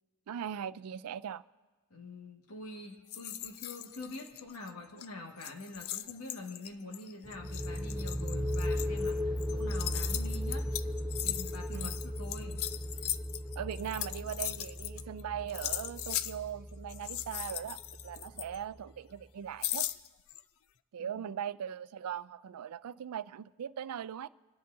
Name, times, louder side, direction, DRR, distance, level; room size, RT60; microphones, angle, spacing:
voice 1, 0.3-1.4 11.7-11.9 13.6-19.9 20.9-24.3, right 9 dB, 80° right, 0.4 m, -40 dB
voice 2, 1.9-10.7 11.2-12.6 21.0-21.2, left 2 dB, 85° left, 1.7 m, -45 dB
sound 1, 3.1-4.7 5.0-5.1 5.4-15.2 15.5-16.4 16.9-18.8 19.6-20.4, left 13 dB, 65° left, 0.4 m, -39 dB
sound 2, 7.2-18.8, left 1 dB, ahead, 0.4 m, -37 dB
26.5 x 10.0 x 2.7 m
head